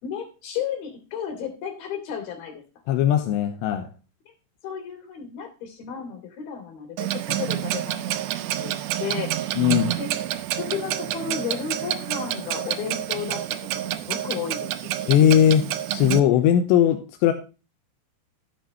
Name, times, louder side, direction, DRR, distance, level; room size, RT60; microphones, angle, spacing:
voice 1, 0.0-2.6 4.6-8.2 8.6-8.7 9.0-9.5 10.0-10.1 10.6-13.4 14.1-14.7 15.0-15.1, left 7 dB, 60° left, 4 dB, 4.7 m, -33 dB
voice 2, 2.9-3.9 9.6-10.0 15.1-17.3, left 10 dB, 85° left, 7 dB, 3.1 m, -19 dB
Clock, 7.0-16.2, right 13 dB, 80° right, 2.8 m, -28 dB
13.0 x 8.7 x 3.0 m, 0.32 s
omnidirectional pair, 5.0 m